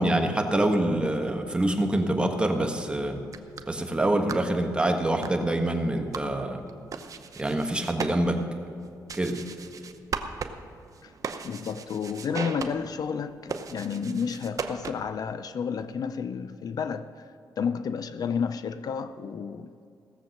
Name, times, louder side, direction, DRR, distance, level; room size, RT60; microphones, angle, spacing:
voice 1, 0.0-3.2 3.7-6.6 7.4-8.4 9.1-9.4, right 1 dB, 15° right, 1.3 m, -25 dB
sound 1, 3.2-15.2, right 5 dB, 50° right, 0.8 m, -39 dB
voice 2, 11.4-19.7, left 6 dB, 60° left, 0.5 m, -31 dB
16.5 x 7.4 x 6.4 m
cardioid pair, 100°, 7 cm